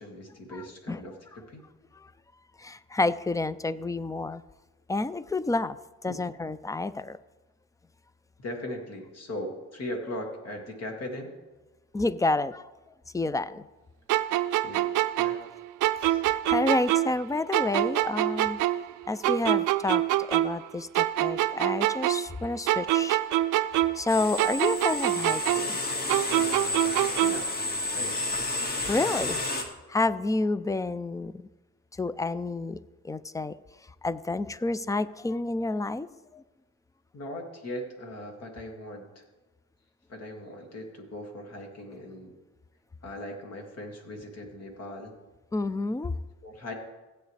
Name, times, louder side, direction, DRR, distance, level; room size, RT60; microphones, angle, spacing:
voice 1, 0.0-1.6 6.1-6.2 8.4-11.3 14.6-14.9 15.2-15.4 16.0-16.2 27.2-27.5 27.9-28.2 29.0-29.2 37.1-39.2 40.1-42.4 43.0-45.1 46.4-46.7, left 1 dB, 55° left, 2 dB, 2.3 m, -39 dB
voice 2, 0.5-1.0 2.6-4.4 4.9-5.8 6.0-7.2 11.9-12.6 13.1-13.7 16.2-18.6 19.1-23.2 23.9-25.8 27.2-27.3 28.9-29.4 29.9-31.4 32.0-32.8 33.0-33.6 34.0-36.1 36.3-36.4 45.5-46.1, left 2 dB, 10° left, 16 dB, 0.4 m, -29 dB
sound 1, 14.1-17.2 17.5-20.7 20.9-24.1 24.4-27.5, right 14 dB, 85° right, 0.5 m, -25 dB
sound 2, 24.1-29.6, left 2 dB, 30° left, 1.7 m, -31 dB
16.0 x 8.2 x 3.3 m, 1.1 s
cardioid pair, 90°, 30 cm